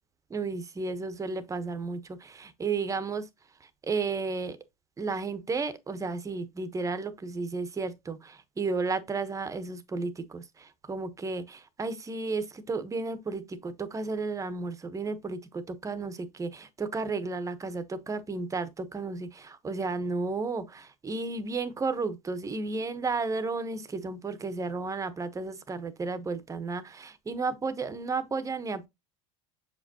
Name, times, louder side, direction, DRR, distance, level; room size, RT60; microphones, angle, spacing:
voice 1, 0.3-3.3 3.9-4.6 5.0-28.9, right 4 dB, 20° right, 1.1 m, -33 dB
7.4 x 5.0 x 2.9 m
supercardioid pair, 110°, 17 cm